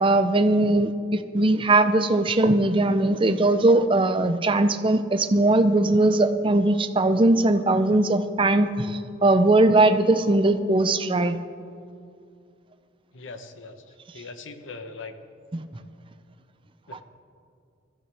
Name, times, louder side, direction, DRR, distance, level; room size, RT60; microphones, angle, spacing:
voice 1, 0.0-11.4 15.5-15.6, right 2 dB, 25° right, 10 dB, 0.6 m, -20 dB
voice 2, 13.1-13.8 14.1-15.1 16.9-17.0, left 3 dB, 80° left, 8 dB, 1.1 m, -40 dB
21.5 x 13.5 x 3.5 m, 2.3 s
head